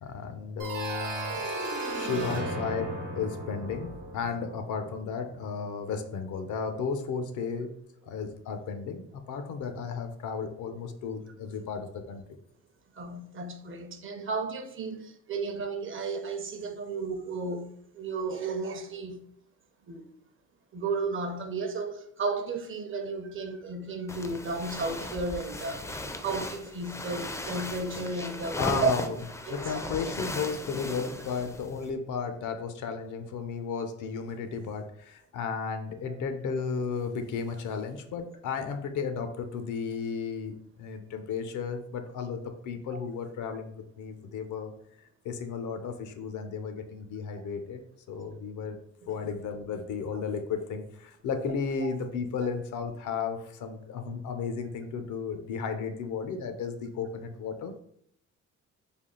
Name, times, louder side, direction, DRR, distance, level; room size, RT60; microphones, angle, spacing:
voice 1, 0.0-7.7 8.0-12.2 28.6-44.7 45.2-47.8 48.1-48.8 49.1-57.8, left 5 dB, 75° left, 0.6 m, -34 dB
sound 1, 0.6-5.3, right 2 dB, 90° right, 0.9 m, -35 dB
voice 2, 12.9-19.3 19.9-20.1 20.7-28.9 29.5-29.8 49.0-49.1, right 3 dB, 40° right, 0.6 m, -33 dB
sound 2, 24.1-31.9, left 2 dB, 10° left, 0.4 m, -37 dB
3.5 x 2.4 x 3.8 m
cardioid pair, 90°, 30 cm